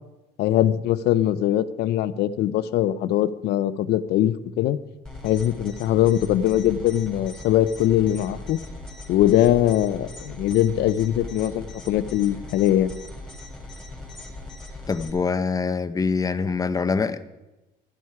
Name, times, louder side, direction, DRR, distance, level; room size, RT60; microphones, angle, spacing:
voice 1, 0.4-4.8 5.2-8.6 9.1-12.9, left 12 dB, 75° left, 0.6 m, -21 dB
sound 1, 5.0-15.1, left 1 dB, 5° left, 3.5 m, -39 dB
voice 2, 14.9-17.3, left 4 dB, 20° left, 0.7 m, -24 dB
12.0 x 11.0 x 4.8 m
cardioid pair, 110°, 17 cm